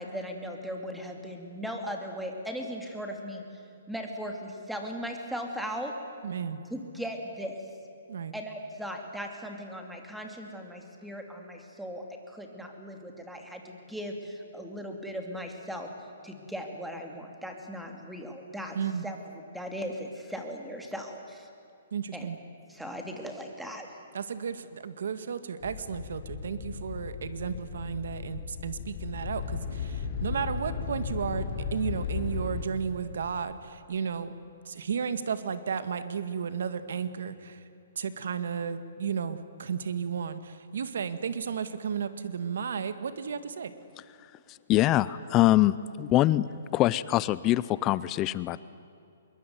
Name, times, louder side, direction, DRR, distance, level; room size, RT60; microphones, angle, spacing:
voice 1, 0.0-3.4 3.9-5.9 6.7-7.6 8.3-15.9 16.2-18.8 19.0-19.2 19.5-21.5 22.1-22.3 22.7-23.9, equal, ahead, 3 dB, 2.7 m, -38 dB
voice 2, 6.2-6.6 8.1-8.3 18.8-19.1 21.9-22.4 24.1-31.4 31.7-34.3 34.7-37.6 38.0-43.7, right 6 dB, 70° right, 11 dB, 2.0 m, -33 dB
sound 1, 25.6-32.6, left 6 dB, 40° left, 3.7 m, -35 dB
voice 3, 44.7-48.6, left 15 dB, 20° left, 18 dB, 0.5 m, -24 dB
26.0 x 22.0 x 9.6 m, 2.6 s
hypercardioid pair, 160°, 0 cm